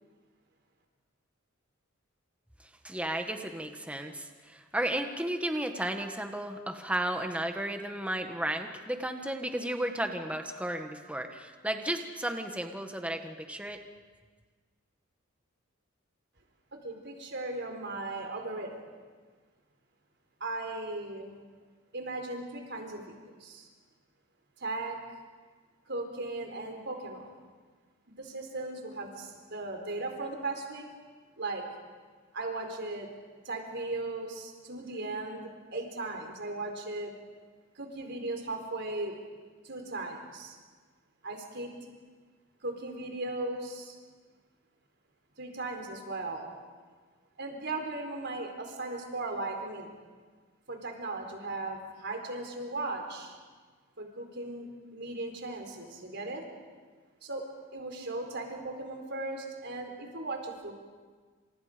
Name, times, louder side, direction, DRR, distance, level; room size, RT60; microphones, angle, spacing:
voice 1, 2.8-13.8, right 1 dB, 5° right, 5 dB, 1.6 m, -33 dB
voice 2, 16.8-18.8 20.4-21.4 21.9-23.7 24.6-25.0 25.9-27.3 28.1-30.8 31.4-31.7 32.3-33.1 33.4-37.1 37.8-39.2 39.6-40.6 41.2-41.7 42.6-43.9 45.4-46.5 47.4-49.9 50.7-53.3 54.0-56.4 57.2-57.4 57.7-60.7, right 2 dB, 55° right, 3 dB, 4.3 m, -37 dB
28.5 x 27.5 x 5.2 m, 1.5 s
head